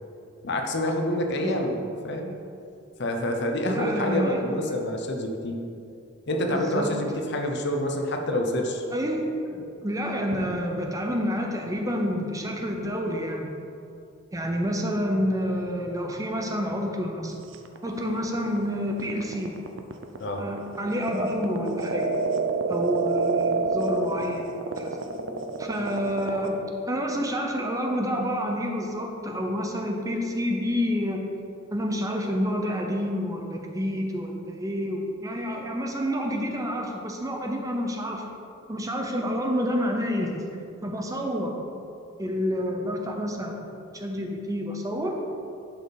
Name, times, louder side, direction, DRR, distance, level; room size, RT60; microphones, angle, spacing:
voice 1, 0.4-1.8 2.0-2.3 3.0-5.6 6.3-8.8 9.5-9.9 20.2-20.5, left 1 dB, 60° left, 3 dB, 0.9 m, -27 dB
voice 2, 1.4-1.8 3.6-4.7 6.5-6.9 8.9-9.3 9.8-13.5 14.3-17.4 17.8-19.6 20.4-22.1 22.7-25.0 25.6-31.3 31.7-38.2 38.7-40.5 40.8-41.5 42.2-43.6 43.9-45.2, equal, 15° right, 2 dB, 0.8 m, -28 dB
sound 1, 17.5-26.5, right 3 dB, 65° right, 0.6 m, -28 dB
11.0 x 5.3 x 4.1 m, 2.6 s
head